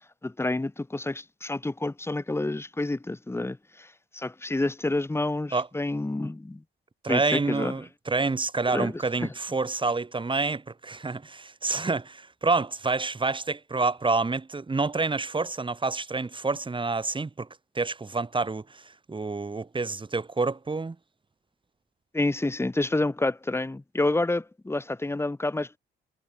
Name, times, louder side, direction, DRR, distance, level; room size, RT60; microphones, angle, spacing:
voice 1, 0.2-6.6 7.1-7.7 8.7-9.3 22.1-25.8, left 2 dB, 10° left, 2.2 m, -29 dB
voice 2, 7.0-17.5 17.7-21.0, right 3 dB, 25° right, 6.4 m, -28 dB
cardioid pair, 90°, 20 cm